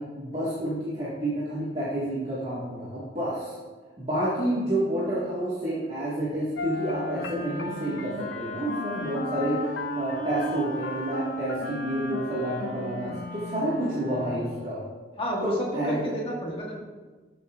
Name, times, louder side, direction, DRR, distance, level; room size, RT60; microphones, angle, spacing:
voice 1, 0.0-3.5 4.0-14.8 15.4-16.0, right 1 dB, 35° right, -9 dB, 1.8 m, -29 dB
sound 1, 6.6-9.1 9.4-11.7, left 5 dB, 85° left, 0.5 m, -39 dB
Wind instrument woodwind instrument, 6.6-14.7, equal, 45° left, 1.0 m, -35 dB
voice 2, 15.2-16.8, equal, 30° left, -3 dB, 1.7 m, -31 dB
11.5 x 7.2 x 2.5 m, 1.3 s
head